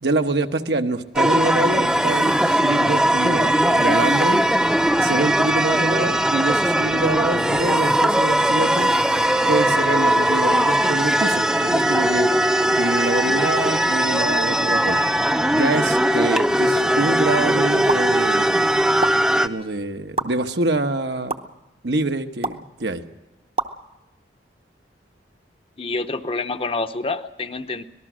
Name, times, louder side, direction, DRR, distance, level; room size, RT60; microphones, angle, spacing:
voice 1, 0.0-4.4 5.0-8.9 9.5-12.3 12.7-15.0 15.5-18.5 19.4-21.4 21.8-23.0, right 2 dB, 75° right, 6 dB, 1.2 m, -25 dB
sound 1, 1.2-19.5, right 1 dB, 5° right, 0.6 m, -19 dB
sound 2, 17.9-18.1 19.0-19.1 20.2-20.3 21.3-21.4 22.4-22.6 23.6-23.7, right 3 dB, 35° right, 0.8 m, -24 dB
voice 2, 25.8-27.8, left 3 dB, 30° left, 10 dB, 0.8 m, -27 dB
25.0 x 19.0 x 6.2 m, 1.0 s
head